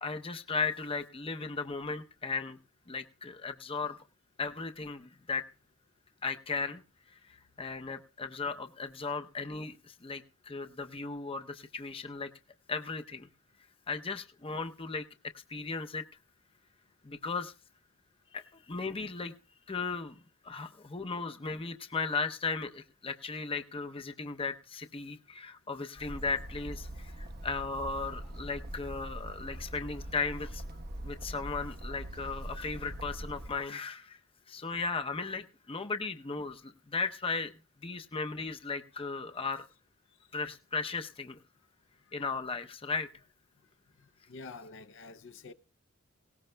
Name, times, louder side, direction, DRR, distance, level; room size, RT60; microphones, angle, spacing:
voice 1, 0.0-2.6 2.9-4.0 4.4-5.5 6.2-6.8 7.1-12.3 12.7-13.3 13.9-15.0 15.3-16.0 17.0-17.5 18.3-19.3 19.7-20.2 20.4-30.6 31.0-34.2 34.5-37.5 37.8-39.6 40.3-41.4 42.1-43.1, left 4 dB, 25° left, 0.7 m, -36 dB
Bird, 26.0-33.6, right 1 dB, 50° right, 1.1 m, -42 dB
voice 2, 44.0-45.5, left 3 dB, 65° left, 0.6 m, -48 dB
19.5 x 17.5 x 2.2 m
head